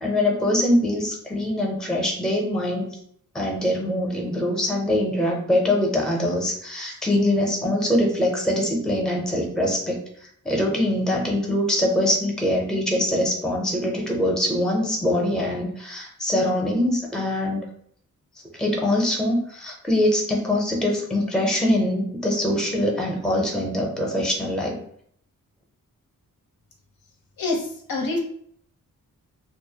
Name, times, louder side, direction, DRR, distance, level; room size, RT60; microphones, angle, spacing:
voice 1, 0.0-2.9 3.3-10.0 10.4-17.6 18.6-24.8, left 1 dB, ahead, -1 dB, 0.4 m, -23 dB
voice 2, 27.4-28.2, left 2 dB, 85° left, 1 dB, 0.7 m, -26 dB
2.3 x 2.0 x 2.7 m, 0.65 s
wide cardioid pair, 120°, 34 cm